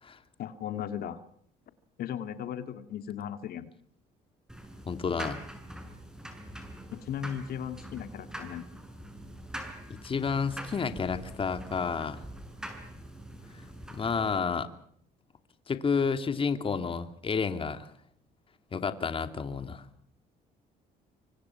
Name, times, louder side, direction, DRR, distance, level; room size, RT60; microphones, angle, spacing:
voice 1, 0.4-1.2 2.0-3.7 6.9-8.7, left 9 dB, 65° left, 9 dB, 2.2 m, -36 dB
sound 1, 4.5-14.4, right 1 dB, 5° right, 6.9 m, -44 dB
voice 2, 4.9-5.4 9.9-12.2 13.9-14.7 15.7-17.9 18.7-19.8, left 5 dB, 30° left, 9 dB, 2.6 m, -30 dB
27.5 x 25.0 x 5.9 m, 0.65 s
cardioid pair, 110°, 17 cm